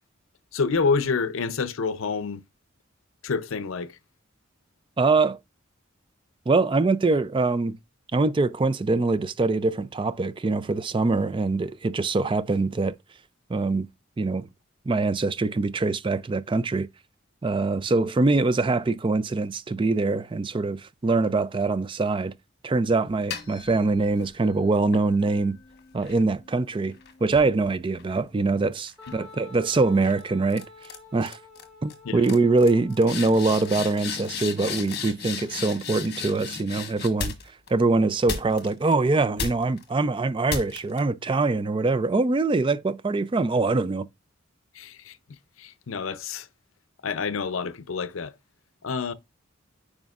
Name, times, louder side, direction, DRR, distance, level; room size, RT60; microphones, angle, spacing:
voice 1, 0.5-2.4 3.2-4.0 32.0-32.2 44.7-45.2 45.6-46.5 47.0-48.3 48.8-49.1, left 5 dB, 75° left, 0.6 m, -28 dB
voice 2, 5.0-5.4 6.5-7.8 8.1-12.9 13.5-13.9 14.2-14.5 14.9-16.9 17.4-22.3 22.6-25.6 25.9-26.9 27.2-30.6 31.1-31.4 31.8-37.3 37.7-44.1, right 3 dB, 25° right, 0.4 m, -23 dB
sound 1, 23.1-24.3 24.9-28.5 28.9-29.3 30.0-30.2 30.5-31.0 31.2-31.6 31.9-32.0 32.2-37.7 38.3-38.9 39.4-39.8 40.5-41.0, left 5 dB, 50° left, 1.2 m, -36 dB
Wind instrument woodwind instrument, 29.0-34.6, left 3 dB, ahead, 3.9 m, -49 dB
9.3 x 4.9 x 2.4 m
head